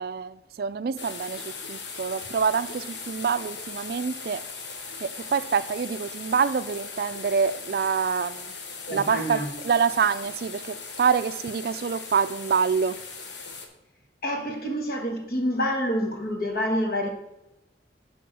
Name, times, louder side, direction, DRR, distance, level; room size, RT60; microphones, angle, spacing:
voice 1, 0.0-4.4 5.0-8.5 8.9-13.0, right 6 dB, 55° right, 0.3 m, -26 dB
sound 1, 1.0-13.7, left 4 dB, 75° left, 1.2 m, -39 dB
voice 2, 8.9-9.5 14.2-17.1, equal, 55° left, 1.4 m, -27 dB
10.5 x 3.6 x 6.2 m
head